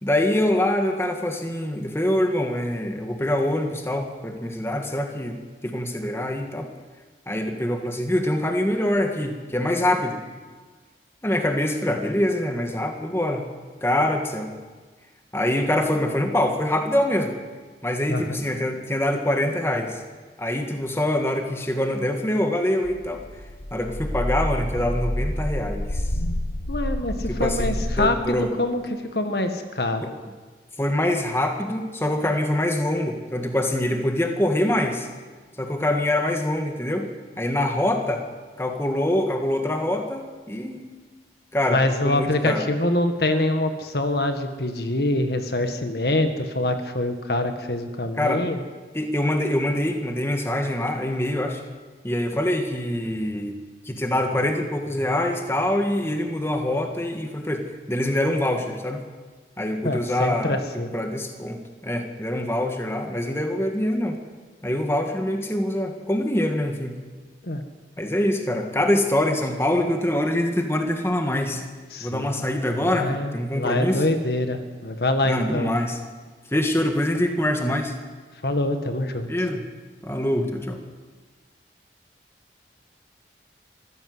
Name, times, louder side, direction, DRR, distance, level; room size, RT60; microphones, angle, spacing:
voice 1, 0.0-5.4 5.6-6.7 7.3-10.2 11.2-13.5 13.8-14.5 15.3-17.3 17.8-20.0 20.4-23.2 23.7-26.0 27.3-28.5 30.0-30.2 30.8-35.1 35.6-37.1 37.4-38.3 38.6-40.8 41.5-42.7 48.2-48.5 48.9-51.6 52.0-53.6 53.8-59.0 59.6-60.6 60.9-64.2 64.6-67.0 68.0-71.6 72.0-74.0 75.2-76.0 76.5-77.9 79.2-79.6 80.0-80.8, left 1 dB, 15° left, 4 dB, 1.9 m, -24 dB
sound 1, 22.8-28.1, left 1 dB, 85° left, 1.3 m, -28 dB
voice 2, 26.7-28.8 29.1-30.0 41.7-48.6 59.8-60.9 67.4-67.6 71.9-72.3 72.7-75.7 78.4-79.3, left 1 dB, 60° left, 7 dB, 1.8 m, -25 dB
24.0 x 15.5 x 8.0 m, 1.4 s
head